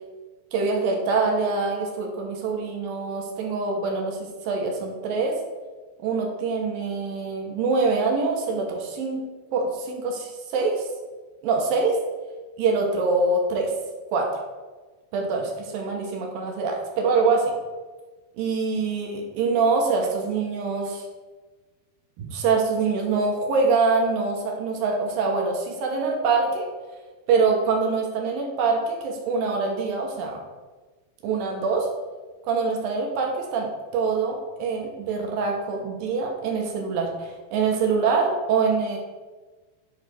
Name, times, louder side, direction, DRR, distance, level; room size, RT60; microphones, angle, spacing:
voice 1, 0.5-5.4 6.0-9.2 9.5-10.9 11.4-12.0 12.6-13.7 14.1-14.3 15.1-17.4 18.4-21.0 22.2-26.7 27.3-30.4 31.2-31.9 32.5-39.0, right 4 dB, 70° right, 1 dB, 2.3 m, -24 dB
10.5 x 4.0 x 6.2 m, 1.3 s
omnidirectional pair, 5.4 m